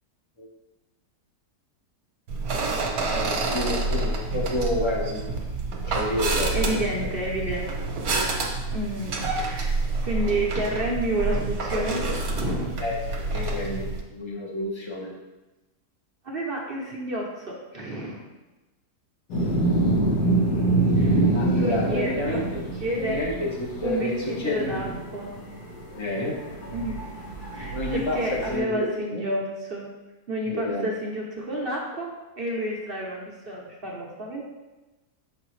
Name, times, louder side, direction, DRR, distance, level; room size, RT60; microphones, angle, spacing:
sound 1, 2.3-14.0, right 3 dB, 65° right, 1.3 m, -28 dB
voice 1, 3.1-5.4 5.9-7.1 12.8-13.0 13.3-15.1 21.3-22.6 23.0-24.9 25.9-26.4 27.7-29.2 30.5-30.9, left 1 dB, 20° left, -1 dB, 0.8 m, -29 dB
voice 2, 6.5-7.7 8.7-9.8 10.0-12.8 16.2-18.2 21.0-22.4 22.8-23.3 23.8-25.3 26.7-26.9 27.5-29.9 30.3-32.1 32.4-34.4, right 1 dB, 45° right, -2 dB, 0.8 m, -30 dB
sound 2, 19.3-28.6, right 2 dB, 65° left, 1.7 m, -26 dB
7.0 x 5.0 x 3.1 m, 1.1 s
omnidirectional pair, 1.8 m